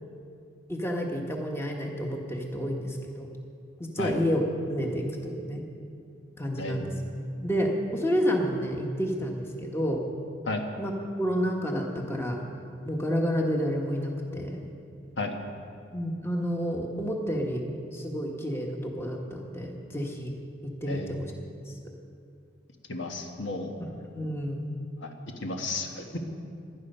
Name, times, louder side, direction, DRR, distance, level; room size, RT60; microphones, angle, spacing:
voice 1, 0.7-3.3 3.8-5.7 6.4-6.9 7.4-10.0 10.8-10.9 11.2-12.4 12.8-14.5 15.9-17.6 17.9-20.3 20.8-21.3 21.7-21.8 24.1-24.7, equal, 15° left, 1 dB, 1.3 m, -29 dB
voice 2, 22.9-23.8 25.0-25.1 25.4-26.2, left 2 dB, 80° left, 3 dB, 1.4 m, -33 dB
17.0 x 11.0 x 5.5 m, 2.5 s
head